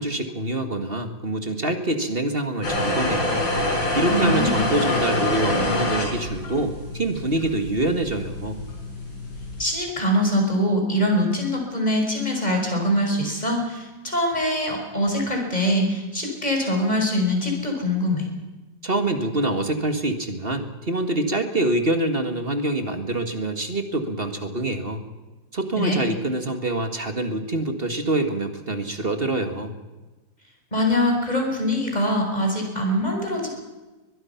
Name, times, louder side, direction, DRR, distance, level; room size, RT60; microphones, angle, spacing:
voice 1, 0.0-3.4 4.0-8.6 18.8-25.0 25.5-29.7, right 2 dB, 30° right, 7 dB, 1.9 m, -25 dB
sound 1, 2.6-9.6, left 1 dB, 85° left, 6.0 m, -26 dB
voice 2, 4.1-4.6 9.6-18.2 25.8-26.0 30.7-33.5, left 1 dB, 20° left, 2 dB, 5.6 m, -23 dB
23.0 x 21.5 x 5.9 m, 1.2 s
omnidirectional pair, 2.0 m